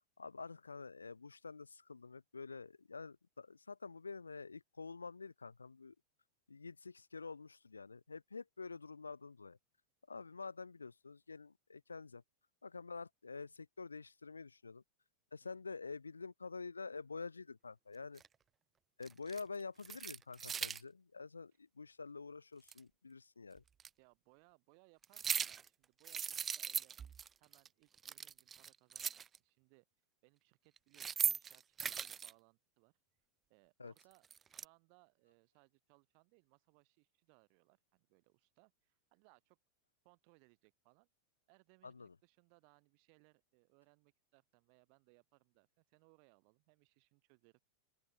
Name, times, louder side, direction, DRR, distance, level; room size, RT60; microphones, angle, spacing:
voice 1, 0.2-5.9 6.5-9.6 10.1-12.2 12.6-14.8 15.3-18.2 19.0-23.6 33.8-33.9 41.8-42.1, left 4 dB, 75° left, 1.8 m, -48 dB
sound 1, 18.2-18.3 19.0-19.4 19.8-20.8 22.7-22.8 23.8-23.9 25.0-25.7 26.0-27.3 27.5-27.7 27.9-29.4 30.8-32.3 34.0-34.6, right 7 dB, 20° right, 0.6 m, -39 dB
voice 2, 24.0-27.0 27.4-29.9 30.2-33.0 33.5-39.6 40.0-41.1 41.5-47.6, right 40 dB or more, 45° right, 7.5 m, -70 dB
open air
figure-of-eight pair, 90°, 0 cm